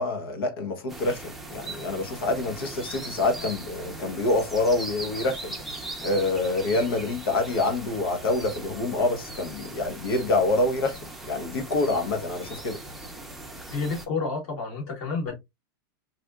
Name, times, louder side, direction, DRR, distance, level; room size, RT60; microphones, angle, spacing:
voice 1, 0.0-5.5 6.0-11.0 11.3-12.8, left 2 dB, 85° left, 1.1 m, -26 dB
sound 1, 0.9-14.1, right 2 dB, ahead, 0.5 m, -39 dB
voice 2, 13.7-15.4, left 4 dB, 50° left, 1.5 m, -30 dB
4.1 x 2.5 x 2.3 m
supercardioid pair, 145°, 12 cm